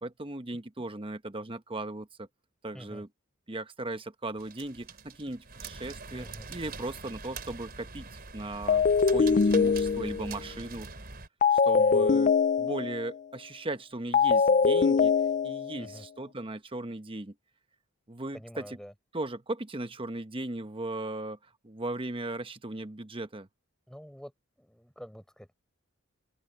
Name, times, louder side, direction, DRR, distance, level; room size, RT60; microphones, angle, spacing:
voice 1, 0.0-2.3 2.6-3.1 3.5-10.9 11.5-12.3 12.6-15.1 15.4-17.3 18.1-18.8 19.1-21.4 21.6-23.5, right 2 dB, 25° right, 1.1 m, -37 dB
sound 1, 4.4-11.3, right 4 dB, 45° right, 3.8 m, -44 dB
voice 2, 6.1-6.5 11.7-12.2 15.8-16.0 18.3-18.9 23.9-24.3 24.6-25.5, equal, 5° left, 5.0 m, -47 dB
sound 2, 8.7-10.4 11.4-13.1 14.1-15.8, left 5 dB, 35° left, 0.4 m, -23 dB
head